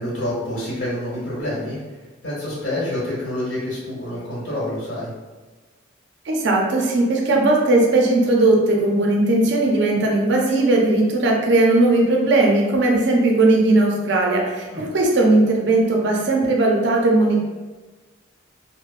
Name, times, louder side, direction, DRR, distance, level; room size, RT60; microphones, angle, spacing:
voice 1, 0.0-2.0 2.2-5.1 14.7-14.9, left 1 dB, 60° left, -9 dB, 1.3 m, -27 dB
voice 2, 6.3-17.4, right 2 dB, 60° right, 0 dB, 0.5 m, -18 dB
3.1 x 2.1 x 2.4 m, 1.3 s
head